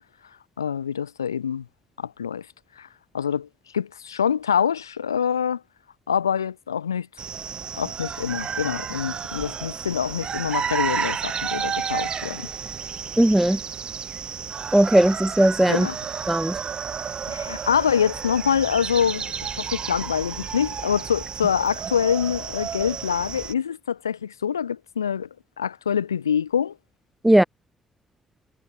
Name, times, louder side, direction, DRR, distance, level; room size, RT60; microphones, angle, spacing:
voice 1, 0.6-1.7 2.0-2.5 2.8-2.9 3.1-3.5 3.7-5.6 6.1-7.1 7.8-12.5 15.7-16.0 17.3-19.3 19.6-25.3 25.6-26.7, left 8 dB, 85° left, 2.2 m, -25 dB
sound 1, 7.2-23.5, right 7 dB, 45° right, 7.2 m, -31 dB
voice 2, 13.2-13.6 14.7-15.9 16.3-16.6 27.2-27.4, right 1 dB, 10° right, 2.3 m, -18 dB
figure-of-eight pair, 40°, 2 cm